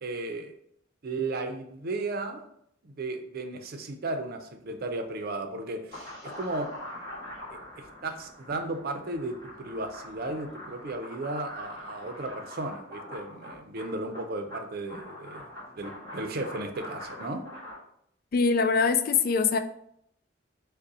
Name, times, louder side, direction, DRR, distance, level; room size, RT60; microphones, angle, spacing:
voice 1, 0.0-0.5 1.0-2.4 2.8-6.7 7.8-15.4 15.8-17.4, right 2 dB, 55° right, 6 dB, 0.5 m, -35 dB
sound 1, 5.9-17.8, left 1 dB, 25° left, 1.7 m, -43 dB
voice 2, 18.3-19.6, left 5 dB, 50° left, 8 dB, 0.3 m, -23 dB
5.2 x 2.2 x 4.1 m, 0.72 s
head